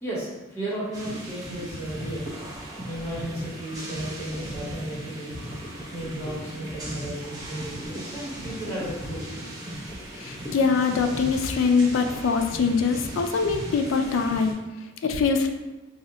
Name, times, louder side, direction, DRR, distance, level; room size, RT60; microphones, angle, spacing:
voice 1, 0.0-2.3 2.8-5.3 5.9-9.4, right 1 dB, 10° left, -8 dB, 0.9 m, -34 dB
sound 1, 0.9-14.5, equal, 20° right, 0.5 m, -37 dB
voice 2, 10.2-14.5 15.0-15.5, left 5 dB, 70° left, 6 dB, 0.3 m, -23 dB
2.7 x 2.1 x 3.7 m, 1.1 s
head